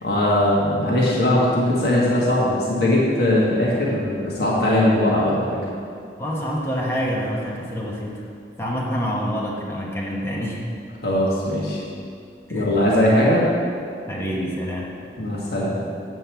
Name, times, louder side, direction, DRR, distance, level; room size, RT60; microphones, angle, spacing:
voice 1, 0.0-5.4 11.0-11.8 12.5-13.4 15.2-15.8, left 1 dB, 60° left, -6 dB, 1.6 m, -20 dB
voice 2, 6.2-8.2 8.6-10.6 12.5-12.7 14.1-14.9, equal, 15° left, -4 dB, 1.1 m, -27 dB
7.7 x 5.4 x 7.0 m, 2.3 s
head